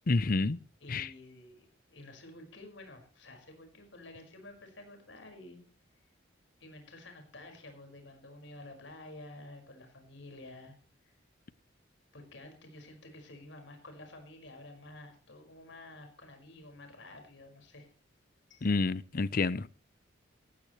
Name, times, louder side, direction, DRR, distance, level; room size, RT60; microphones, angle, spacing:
voice 1, 0.1-0.6 0.9-1.1 18.6-19.7, left 3 dB, 45° left, 0.6 m, -28 dB
voice 2, 0.8-5.6 6.6-10.8 11.0-11.2 12.1-17.9 18.5-18.7, left 2 dB, 70° left, 5.3 m, -51 dB
18.5 x 15.5 x 3.2 m
head